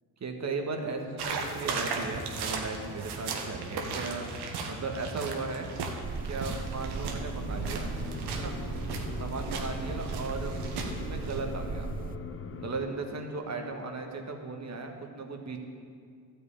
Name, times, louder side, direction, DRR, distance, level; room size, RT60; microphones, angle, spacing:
voice 1, 0.2-5.7 6.3-7.9 8.3-8.6 9.2-11.9 12.5-15.6, right 3 dB, 40° right, 4 dB, 1.6 m, -36 dB
sound 1, 1.2-11.4, right 4 dB, 75° right, 1.5 m, -36 dB
sound 2, 6.0-12.2, right 6 dB, 20° right, 0.4 m, -37 dB
sound 3, 6.9-12.9, left 6 dB, 30° left, 0.8 m, -41 dB
12.0 x 5.6 x 8.6 m, 2.2 s
supercardioid pair, 75°, 40 cm